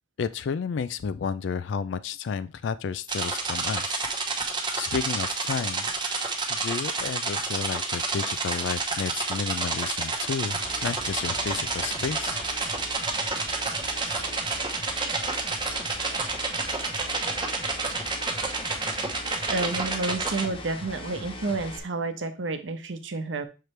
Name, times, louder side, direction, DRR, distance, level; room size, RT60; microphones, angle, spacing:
voice 1, 0.2-4.0 4.7-5.9 6.5-12.4, left 6 dB, 70° left, 14 dB, 0.3 m, -31 dB
sound 1, 3.1-20.5, right 3 dB, 25° right, 0.9 m, -29 dB
sound 2, 10.5-21.8, left 1 dB, 30° left, 1.0 m, -40 dB
voice 2, 19.5-23.5, right 3 dB, 80° right, 8 dB, 0.9 m, -30 dB
6.6 x 4.6 x 3.2 m, 0.30 s
head